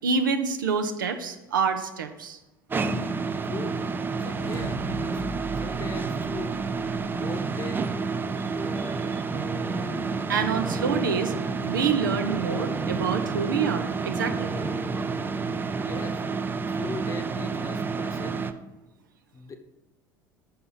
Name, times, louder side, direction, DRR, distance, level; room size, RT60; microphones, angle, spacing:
voice 1, 0.0-2.4 8.4-8.5 8.8-9.2 10.3-11.3 11.6-14.5, right 5 dB, 75° right, 7 dB, 0.6 m, -27 dB
sound 1, 2.7-18.5, right 4 dB, 20° right, 0.5 m, -29 dB
voice 2, 3.4-3.8 4.2-5.2 5.6-6.6 7.1-7.9 8.7-9.2 15.8-16.3 16.7-18.5 19.3-19.6, left 4 dB, 30° left, 6 dB, 0.9 m, -39 dB
sound 2, 3.9-7.2, right 3 dB, 60° right, 1.1 m, -41 dB
sound 3, 7.8-17.7, left 1 dB, 5° left, 1.0 m, -41 dB
5.7 x 5.6 x 5.5 m, 1.0 s
figure-of-eight pair, 65°, 11 cm